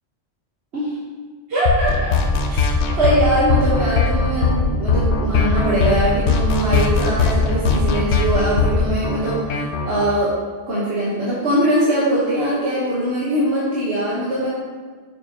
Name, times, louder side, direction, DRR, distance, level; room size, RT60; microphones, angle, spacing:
voice 1, 1.5-2.2 2.5-2.6 3.0-10.4 10.7-14.5, right 1 dB, 75° right, -8 dB, 1.5 m, -21 dB
sound 1, 1.7-10.0, left 4 dB, 90° left, 1.0 m, -19 dB
7.0 x 6.7 x 2.9 m, 1.5 s
omnidirectional pair, 1.1 m